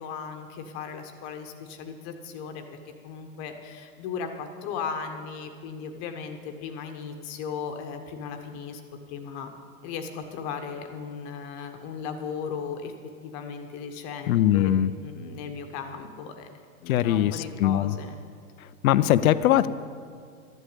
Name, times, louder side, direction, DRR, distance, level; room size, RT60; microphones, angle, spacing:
voice 1, 0.0-8.8 9.1-9.5 9.8-12.9 13.2-14.7 15.0-16.5 16.8-18.1, left 6 dB, 40° left, 5 dB, 1.3 m, -36 dB
voice 2, 14.3-14.9 16.9-17.9 18.8-19.7, left 12 dB, 75° left, 15 dB, 0.7 m, -21 dB
12.5 x 8.2 x 8.5 m, 2.2 s
hypercardioid pair, 135°, 42 cm